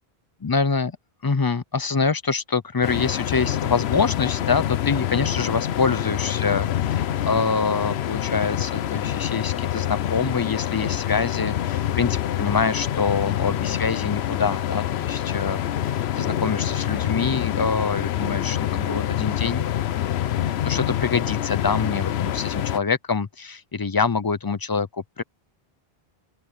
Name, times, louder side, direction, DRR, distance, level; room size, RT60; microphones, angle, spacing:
voice 1, 0.4-0.9 1.2-19.7 20.6-25.2, left 5 dB, 30° left, 0.4 m, -25 dB
sound 1, 2.8-22.8, left 11 dB, 85° left, 0.9 m, -26 dB
open air
omnidirectional pair, 1.1 m